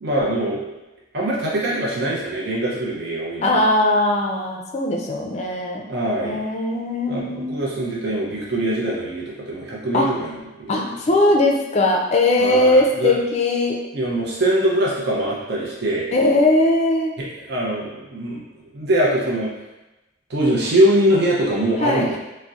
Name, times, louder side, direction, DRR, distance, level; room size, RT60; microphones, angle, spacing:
voice 1, 0.0-0.6 1.1-3.6 5.9-6.4 7.1-10.8 12.4-13.1 13.9-16.0 17.2-19.5 20.3-22.2, right 1 dB, 60° right, -5 dB, 0.6 m, -22 dB
voice 2, 3.4-5.8 6.2-7.6 9.9-10.1 10.7-13.8 16.1-17.1 21.8-22.2, left 2 dB, 35° left, 0 dB, 0.4 m, -19 dB
3.9 x 2.1 x 2.4 m, 1.0 s
head